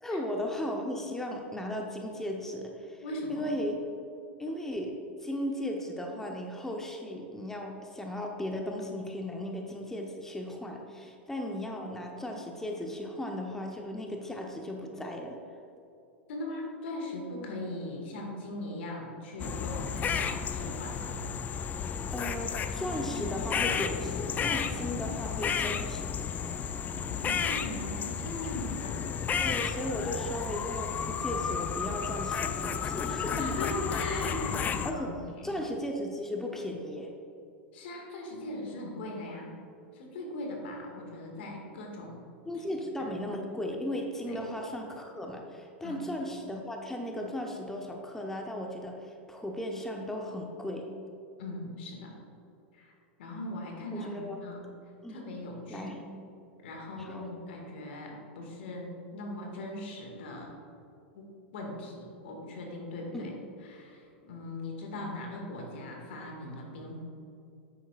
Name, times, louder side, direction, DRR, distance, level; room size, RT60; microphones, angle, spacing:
voice 1, 0.0-3.0 3.3-3.8 4.4-15.4 22.1-26.2 29.4-33.5 34.8-35.1 35.4-37.1 42.5-50.9 53.9-54.4 55.0-55.2 55.7-56.1 57.0-57.3 63.1-63.3, left 1 dB, 5° left, 1 dB, 0.8 m, -36 dB
voice 2, 3.0-3.5 16.3-21.2 26.9-29.1 33.3-35.6 37.7-39.6 39.9-42.2 43.0-43.1 44.3-44.4 45.8-46.0 51.4-52.2 52.7-52.9 53.2-54.6 55.1-56.0 56.6-60.5 61.1-63.3 63.6-67.0, left 1 dB, 70° left, 0 dB, 2.0 m, -39 dB
sound 1, 19.4-34.9, left 7 dB, 25° left, 0.4 m, -32 dB
10.0 x 8.6 x 2.5 m, 2.7 s
hypercardioid pair, 100°, 6 cm